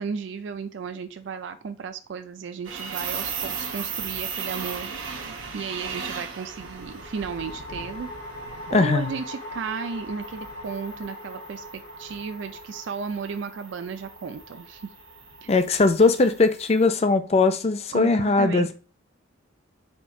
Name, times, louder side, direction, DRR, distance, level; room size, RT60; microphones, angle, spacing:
voice 1, 0.0-8.1 8.7-11.6 12.0-14.8 15.4-15.5 17.9-18.7, right 5 dB, 65° right, 0.4 m, -34 dB
sound 1, 2.6-16.7, right 6 dB, 85° right, 1.0 m, -37 dB
sound 2, 3.3-4.0 6.5-17.8, left 1 dB, 85° left, 2.0 m, -42 dB
voice 2, 8.7-9.1 15.5-18.7, left 3 dB, 30° left, 0.4 m, -20 dB
4.4 x 2.4 x 4.3 m
head